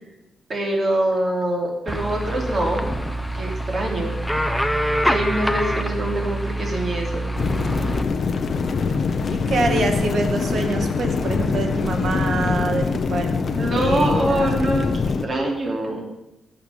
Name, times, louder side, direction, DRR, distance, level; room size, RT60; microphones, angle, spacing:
voice 1, 0.5-2.8 3.4-4.2 5.0-7.3 13.6-14.9 15.2-16.0, right 1 dB, 30° right, -1 dB, 3.6 m, -24 dB
sound 1, 1.9-8.0, right 1 dB, ahead, 0.9 m, -25 dB
sound 2, 7.4-15.2, left 4 dB, 40° left, 1.0 m, -23 dB
voice 2, 9.3-13.3 13.7-14.6, right 3 dB, 55° right, 4 dB, 2.3 m, -25 dB
16.5 x 6.9 x 7.3 m, 0.94 s
wide cardioid pair, 145°, 0 cm